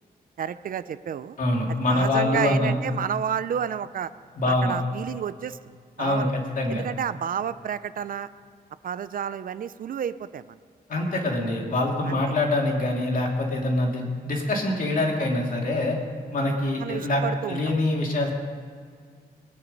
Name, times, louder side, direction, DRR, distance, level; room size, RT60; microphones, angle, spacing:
voice 1, 0.4-1.4 1.9-4.1 4.5-6.3 6.7-8.3 8.8-10.5 11.1-11.2 12.1-12.2 16.8-17.6, right 8 dB, 60° right, 14 dB, 0.5 m, -30 dB
voice 2, 1.4-2.7 4.4-4.7 6.0-6.8 10.9-16.0 16.3-18.3, left 2 dB, 55° left, 0 dB, 2.5 m, -25 dB
21.0 x 9.6 x 5.3 m, 2.1 s
wide cardioid pair, 170°, 16 cm